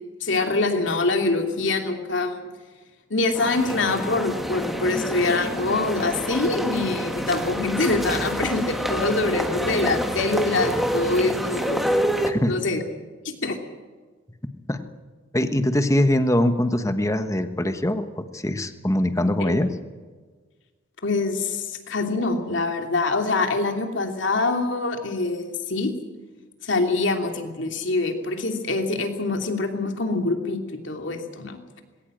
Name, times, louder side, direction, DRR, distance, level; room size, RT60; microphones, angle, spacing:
voice 1, 0.2-2.4 3.1-11.8 12.5-12.8 13.4-13.6 19.4-19.6 21.0-25.9 26.6-31.6, left 3 dB, 70° left, 4 dB, 2.8 m, -24 dB
sound 1, 3.3-12.3, equal, ahead, 1.6 m, -27 dB
voice 2, 12.2-12.5 14.7-14.8 15.3-18.1 18.3-19.7, left 1 dB, 15° left, 9 dB, 1.2 m, -22 dB
20.0 x 18.0 x 7.7 m, 1.4 s
head